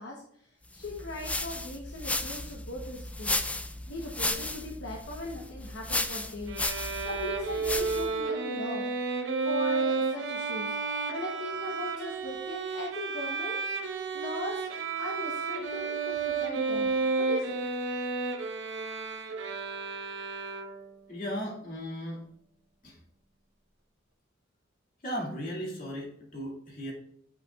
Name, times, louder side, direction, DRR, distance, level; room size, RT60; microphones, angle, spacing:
voice 1, 0.0-3.4 3.9-6.6 7.0-8.9 9.4-10.8 11.1-14.7 15.0-17.6, left 1 dB, 70° left, -1 dB, 0.9 m, -39 dB
sound 1, 0.8-8.2, left 2 dB, 5° left, 0.3 m, -34 dB
Bowed string instrument, 6.5-21.0, right 4 dB, 70° right, 0.9 m, -32 dB
voice 2, 21.1-22.2 22.8-23.0 25.0-26.9, equal, 45° left, -2 dB, 2.2 m, -36 dB
8.9 x 5.3 x 2.3 m, 0.68 s
head